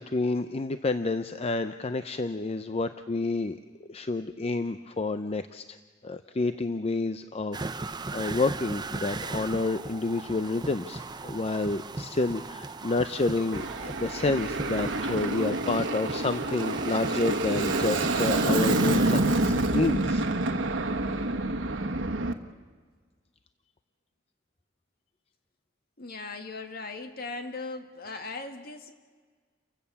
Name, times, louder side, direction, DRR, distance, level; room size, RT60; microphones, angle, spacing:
voice 1, 0.0-3.6 3.9-5.8 6.0-20.3, left 3 dB, 35° left, 10 dB, 0.6 m, -29 dB
sound 1, 7.5-19.9, right 3 dB, 25° right, 0.6 m, -37 dB
Aircraft, 13.5-22.3, right 2 dB, 80° right, 1.4 m, -27 dB
voice 2, 26.0-28.9, left 3 dB, 55° left, 5 dB, 2.0 m, -38 dB
30.0 x 16.0 x 7.0 m, 1.5 s
head